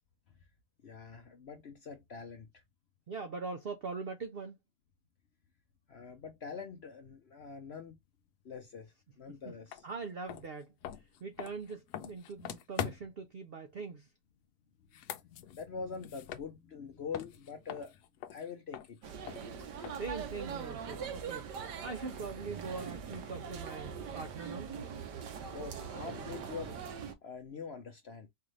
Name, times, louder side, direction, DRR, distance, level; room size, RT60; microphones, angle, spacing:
voice 1, 0.8-2.5 5.9-8.0 8.4-9.9 15.2-17.9 18.3-19.0 25.5-26.8 27.2-28.3, left 5 dB, 55° left, 0.7 m, -44 dB
voice 2, 3.1-4.6 9.8-10.7 11.2-14.1 19.6-21.5 21.8-24.7, right 4 dB, 70° right, 0.5 m, -42 dB
sound 1, 9.7-9.8 10.2-13.3 14.8-16.9 17.1-20.2, left 10 dB, 75° left, 1.1 m, -43 dB
sound 2, 19.0-27.1, right 6 dB, 85° right, 1.5 m, -42 dB
4.7 x 2.5 x 3.2 m
omnidirectional pair, 1.8 m